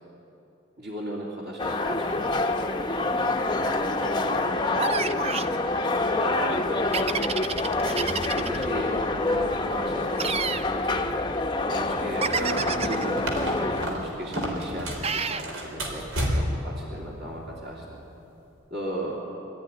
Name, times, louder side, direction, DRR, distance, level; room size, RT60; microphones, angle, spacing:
voice 1, 0.8-3.2 3.7-5.7 6.2-6.7 7.0-7.3 8.1-11.1 11.6-12.3 12.8-18.0 18.7-19.2, equal, 50° right, -5 dB, 2.8 m, -36 dB
sound 1, 1.6-13.9, left 2 dB, 20° left, 0.9 m, -27 dB
sound 2, 4.8-5.5 6.9-8.7 10.2-10.7 12.2-13.1 15.0-15.5, right 5 dB, 30° right, 0.5 m, -29 dB
sound 3, 12.2-15.1 15.4-16.7, equal, 80° right, 4.0 m, -30 dB
24.5 x 13.5 x 9.9 m, 2.9 s
head